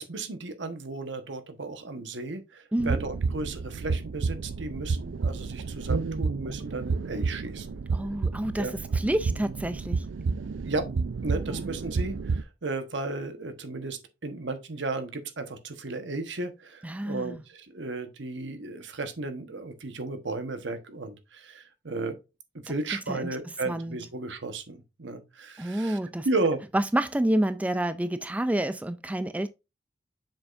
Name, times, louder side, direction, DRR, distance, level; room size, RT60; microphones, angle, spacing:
voice 1, 0.0-7.8 8.6-8.7 10.6-10.9 11.2-22.2 22.5-26.0 26.2-26.6, right 3 dB, 70° right, 1.1 m, -34 dB
voice 2, 2.7-3.0 7.9-8.7 8.9-10.0 11.5-11.6 16.8-17.4 23.1-23.4 23.7-24.0 25.6-26.3 26.7-29.5, right 1 dB, 10° right, 0.3 m, -28 dB
sound 1, 2.8-12.4, right 4 dB, 85° right, 0.5 m, -30 dB
7.0 x 5.5 x 2.5 m
head